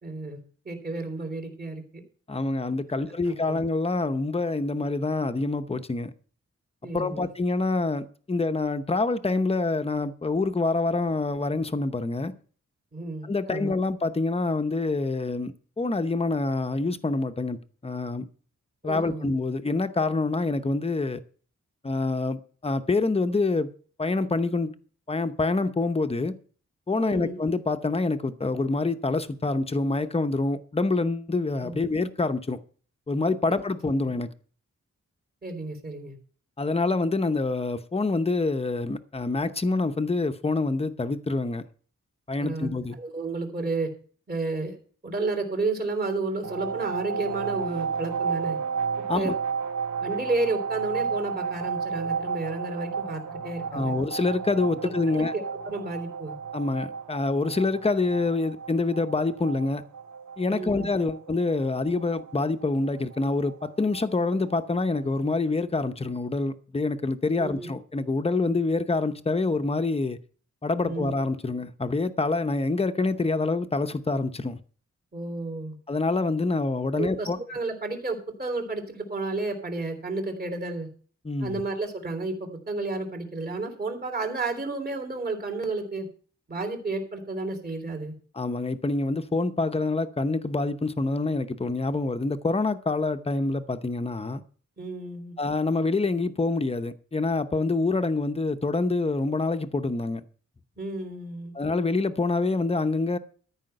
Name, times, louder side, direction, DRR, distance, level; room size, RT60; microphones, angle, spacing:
voice 1, 0.0-0.4 0.7-2.0 3.0-3.6 6.8-7.3 12.9-13.7 18.8-19.3 27.0-27.3 31.6-31.7 33.5-33.6 35.4-36.2 42.4-42.7 43.0-43.9 44.3-44.8 45.0-48.6 49.1-49.3 50.0-54.0 55.1-56.4 60.5-60.9 67.4-67.7 70.8-71.1 75.1-75.8 77.0-80.9 81.4-86.1 86.5-88.1 94.8-95.4 100.8-101.5, right 3 dB, 35° right, 3.4 m, -32 dB
voice 2, 2.3-6.1 6.9-12.3 13.2-18.3 18.8-21.2 21.8-23.7 24.0-24.7 25.1-26.3 26.9-32.6 33.1-34.3 36.6-41.6 42.3-43.0 49.1-49.3 53.7-55.3 56.5-59.8 60.4-70.2 70.6-74.6 75.9-77.4 81.2-81.6 88.4-94.4 95.4-100.2 101.5-103.2, left 3 dB, 20° left, 0.8 m, -26 dB
sound 1, 46.4-65.0, right 6 dB, 75° right, 2.0 m, -33 dB
13.5 x 5.7 x 7.8 m
wide cardioid pair, 160°, 29 cm